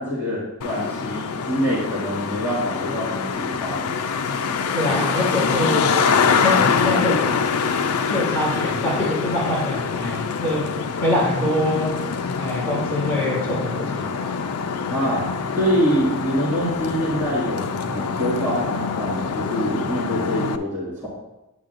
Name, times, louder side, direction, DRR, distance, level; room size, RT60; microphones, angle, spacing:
voice 1, 0.0-3.9 14.9-15.2 15.5-21.1, equal, 10° right, -11 dB, 2.0 m, -25 dB
Traffic noise roadway noise, 0.6-20.6, left 5 dB, 85° left, 0.5 m, -25 dB
voice 2, 4.6-5.9 6.3-7.2 8.0-10.6 11.0-11.9 12.4-14.1 17.8-18.0, left 1 dB, 10° left, -10 dB, 2.7 m, -24 dB
9.2 x 8.7 x 2.5 m, 0.96 s
head